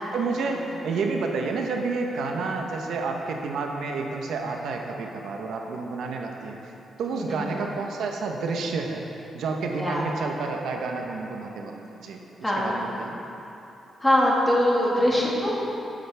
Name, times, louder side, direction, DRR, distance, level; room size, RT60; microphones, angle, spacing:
voice 1, 0.1-6.6 7.0-9.1 9.3-11.7 12.0-12.2 12.6-13.2, right 4 dB, 85° right, 2 dB, 1.0 m, -29 dB
voice 2, 7.1-7.5 9.8-10.0 12.4-12.8 14.0-15.6, left 1 dB, 10° left, -5 dB, 1.8 m, -23 dB
12.5 x 9.2 x 3.5 m, 2.9 s
wide cardioid pair, 160°, 0 cm